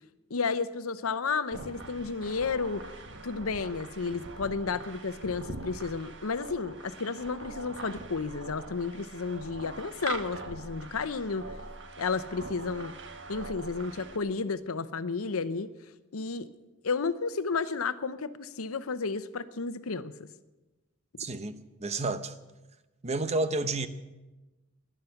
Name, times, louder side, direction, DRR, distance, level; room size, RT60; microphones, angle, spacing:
voice 1, 0.3-2.8 3.2-11.4 12.0-12.9 13.3-15.7 16.1-16.5 16.8-20.3, left 4 dB, 85° left, 0.8 m, -32 dB
sound 1, 1.5-14.2, right 3 dB, 60° right, 1.2 m, -43 dB
voice 2, 21.2-22.3 23.0-23.9, right 2 dB, 30° right, 0.8 m, -30 dB
19.5 x 11.5 x 5.8 m
head